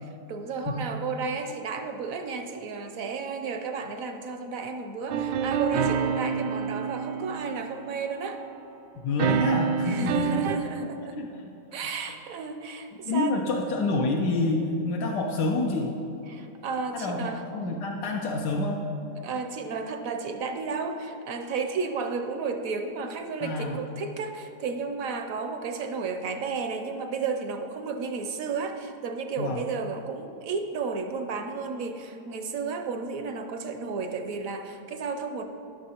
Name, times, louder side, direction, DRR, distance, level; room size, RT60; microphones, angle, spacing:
voice 1, 0.0-8.4 9.8-11.2 11.7-13.6 16.3-17.4 19.2-35.4, right 4 dB, 65° right, 6 dB, 0.9 m, -33 dB
sound 1, 5.1-8.3 9.2-10.6, right 7 dB, 85° right, 1.2 m, -27 dB
voice 2, 9.0-10.4 11.2-11.3 13.0-15.9 16.9-18.8 23.4-23.8 29.4-29.6, left 2 dB, 85° left, 0 dB, 1.3 m, -28 dB
17.0 x 6.4 x 2.9 m, 2.8 s
omnidirectional pair, 1.8 m